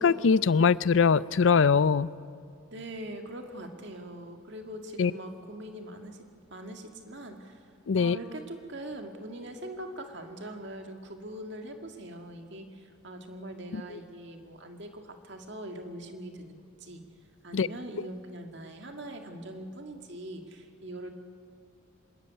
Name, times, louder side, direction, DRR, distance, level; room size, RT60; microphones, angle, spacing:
voice 1, 0.0-2.1 5.0-5.1 7.9-8.2 17.5-17.7, left 5 dB, 65° left, 19 dB, 0.4 m, -22 dB
voice 2, 2.7-7.6 8.0-17.1 17.4-21.1, right 1 dB, 55° right, 4 dB, 2.0 m, -42 dB
25.5 x 13.5 x 9.3 m, 2.3 s
head